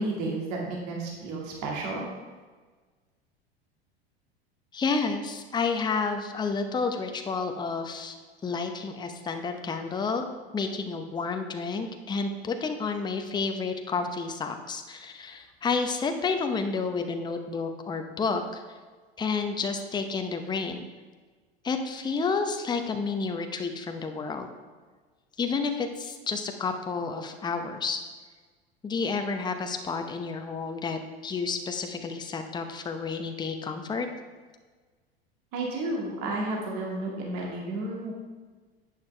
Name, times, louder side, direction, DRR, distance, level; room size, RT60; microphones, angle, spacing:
voice 1, 0.0-2.1 35.5-38.1, right 2 dB, 50° right, -2 dB, 2.2 m, -32 dB
voice 2, 4.7-8.1 8.4-10.3 10.5-18.6 19.2-20.8 21.6-24.5 25.4-28.0 28.8-34.1, left 4 dB, 15° left, 6 dB, 0.8 m, -30 dB
11.5 x 8.4 x 3.3 m, 1.4 s
figure-of-eight pair, 85°, 31 cm